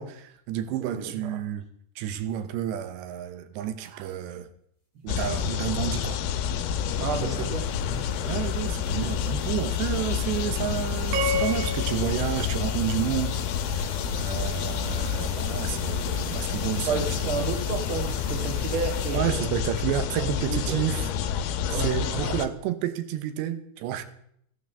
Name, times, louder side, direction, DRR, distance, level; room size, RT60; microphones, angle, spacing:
voice 1, 0.0-1.7 2.0-4.5 5.0-6.2 7.2-7.5 8.2-13.4 13.7-13.9 14.2-17.5 19.1-21.1 21.7-24.0, right 11 dB, 85° right, 3.3 m, -30 dB
voice 2, 0.8-1.4 7.0-8.1 8.9-9.1 16.9-19.6 20.2-21.1 21.7-22.3, right 4 dB, 45° right, 1.8 m, -32 dB
sound 1, 3.8-4.1 6.3-19.2, left 3 dB, 20° left, 2.3 m, -46 dB
sound 2, 5.1-22.5, left 8 dB, 75° left, 2.5 m, -29 dB
sound 3, 11.1-13.5, left 1 dB, 60° right, 2.2 m, -31 dB
14.5 x 9.4 x 6.8 m
omnidirectional pair, 4.9 m